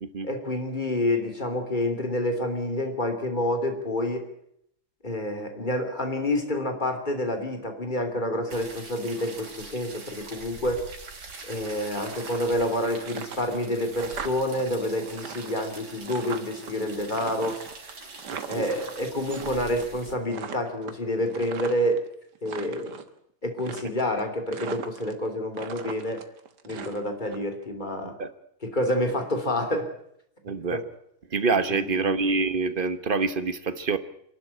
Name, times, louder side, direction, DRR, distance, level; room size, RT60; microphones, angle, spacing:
voice 1, 0.2-4.3 5.0-10.8 11.4-17.6 18.5-22.0 22.4-23.0 23.4-26.2 26.6-28.1 28.7-29.9 30.7-30.8 31.7-32.1, left 1 dB, 25° left, 5 dB, 3.2 m, -28 dB
sound 1, 8.5-20.1, right 3 dB, 80° right, 4.2 m, -44 dB
Swinging Walking, 11.8-12.7 13.0-14.6 14.9-16.7 17.1-19.5 19.8-20.0 20.3-22.0 22.3-23.1 23.6-24.2 24.5-25.3 25.5-27.4, right 7 dB, 60° right, 1.9 m, -39 dB
voice 2, 18.3-18.7 28.2-28.3 30.4-30.8 31.3-34.0, right 4 dB, 35° right, 11 dB, 1.0 m, -26 dB
26.5 x 12.0 x 8.5 m, 0.73 s
omnidirectional pair, 2.1 m